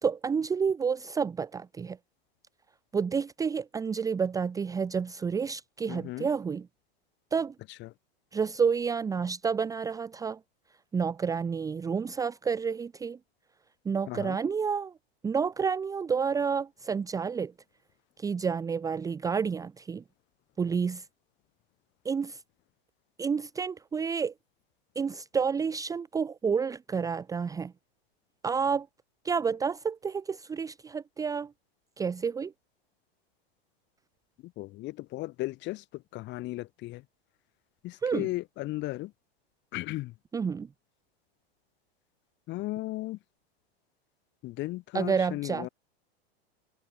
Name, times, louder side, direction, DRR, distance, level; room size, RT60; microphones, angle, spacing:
voice 1, 0.0-2.0 2.9-6.7 7.3-7.5 8.3-10.4 10.9-13.2 13.8-14.9 15.2-17.5 18.2-20.0 20.6-21.0 22.0-22.4 23.2-24.3 24.9-27.7 28.4-28.9 29.2-31.5 32.0-32.5 38.0-38.3 40.3-40.7 44.9-45.7, right 6 dB, 10° right, 1.0 m, -29 dB
voice 2, 5.9-6.3 7.7-7.9 14.1-14.4 34.4-37.0 37.8-39.1 39.7-40.1 42.5-43.2 44.4-45.7, left 18 dB, 35° left, 5.4 m, -36 dB
supercardioid pair, 145°, 31 cm